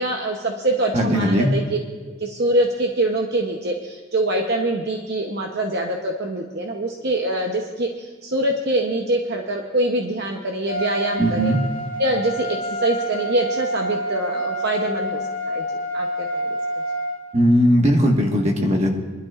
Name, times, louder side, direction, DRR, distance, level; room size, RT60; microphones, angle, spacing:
voice 1, 0.0-1.8 2.2-11.5 12.0-15.6 15.9-16.6, right 1 dB, 50° right, 2 dB, 0.8 m, -24 dB
voice 2, 0.9-1.5 11.2-11.6 17.3-18.9, equal, 30° right, 2 dB, 1.4 m, -18 dB
Trumpet, 10.7-17.2, equal, 35° left, 1.7 m, -27 dB
25.0 x 12.0 x 2.5 m, 1.4 s
head